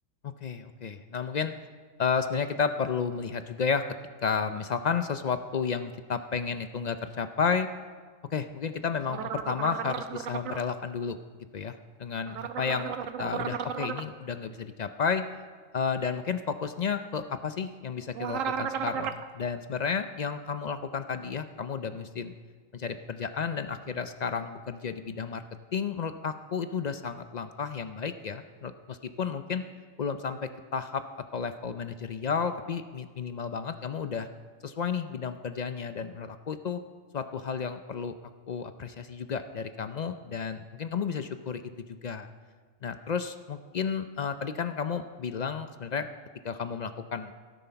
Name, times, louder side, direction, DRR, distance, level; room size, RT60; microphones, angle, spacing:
voice 1, 0.4-1.5 2.0-3.8 4.2-7.7 8.3-11.2 11.5-12.9 13.2-15.2 15.7-22.3 22.7-25.4 25.7-29.6 30.0-31.0 31.3-34.3 34.6-36.8 37.1-38.1 38.5-41.6 42.0-42.3 42.8-46.1 46.4-47.3, left 6 dB, 60° left, 9 dB, 0.4 m, -32 dB
sound 1, 9.1-10.6 12.3-14.0 18.1-19.2, right 8 dB, 80° right, 1.1 m, -34 dB
16.5 x 9.2 x 5.7 m, 1.5 s
omnidirectional pair, 1.4 m